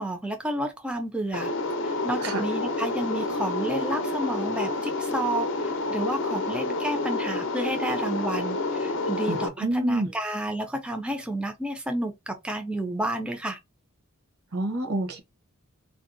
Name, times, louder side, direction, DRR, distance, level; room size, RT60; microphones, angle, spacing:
voice 1, 0.0-1.5 1.8-13.6, right 1 dB, 5° right, 0.3 m, -31 dB
sound 1, 1.3-9.5, left 2 dB, 60° left, 0.5 m, -29 dB
voice 2, 9.3-10.1 14.5-15.2, right 1 dB, 85° right, 0.9 m, -28 dB
3.5 x 2.6 x 2.5 m
head